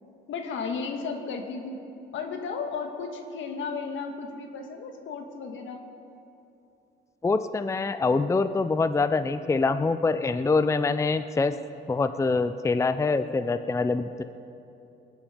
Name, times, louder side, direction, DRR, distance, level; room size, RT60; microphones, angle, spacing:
voice 1, 0.3-1.8 2.1-5.8, left 5 dB, 75° left, 5 dB, 1.7 m, -34 dB
voice 2, 7.2-11.5 11.9-14.2, left 3 dB, 15° left, 11 dB, 0.5 m, -25 dB
20.5 x 10.5 x 5.0 m, 2.8 s
cardioid pair, 90°, 20 cm